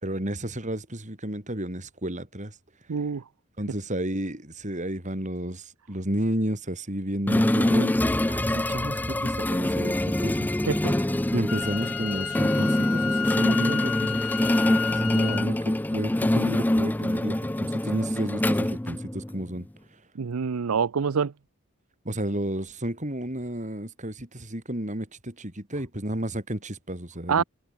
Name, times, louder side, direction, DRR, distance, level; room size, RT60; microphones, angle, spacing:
voice 1, 0.0-2.5 3.6-10.5 10.9-11.0 11.3-19.7 22.0-27.4, right 1 dB, 35° right, 4.4 m, -32 dB
voice 2, 2.9-3.2 10.7-10.9 20.2-21.3 27.3-27.4, right 6 dB, 75° right, 0.5 m, -26 dB
sound 1, 7.3-19.5, left 1 dB, 10° left, 0.5 m, -25 dB
Wind instrument woodwind instrument, 11.5-15.5, left 7 dB, 70° left, 4.5 m, -31 dB
head